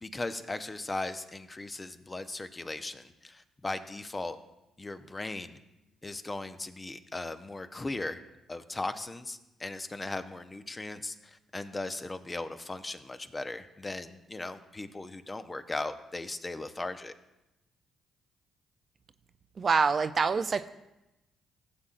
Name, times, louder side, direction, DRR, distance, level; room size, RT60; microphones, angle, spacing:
voice 1, 0.0-4.4 4.8-5.6 6.0-8.2 8.5-17.1, left 2 dB, 25° left, 10 dB, 0.7 m, -38 dB
voice 2, 19.6-20.7, right 5 dB, 45° right, 11 dB, 0.4 m, -26 dB
15.0 x 7.5 x 2.5 m, 0.95 s
supercardioid pair, 60°, 0 cm